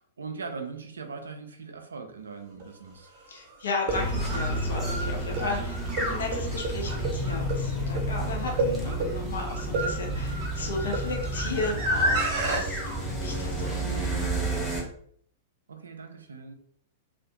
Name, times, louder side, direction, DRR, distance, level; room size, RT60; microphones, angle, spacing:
voice 1, 0.0-3.1 15.7-16.5, right 4 dB, 80° right, 5 dB, 0.3 m, -40 dB
sound 1, 2.6-2.7 3.7-12.6, right 2 dB, 50° right, 0.7 m, -31 dB
voice 2, 3.3-14.7, left 3 dB, 75° left, 1 dB, 0.6 m, -35 dB
sound 2, 3.9-14.8, right 1 dB, ahead, 0.8 m, -31 dB
2.4 x 2.1 x 2.7 m, 0.63 s
figure-of-eight pair, 105°, 0 cm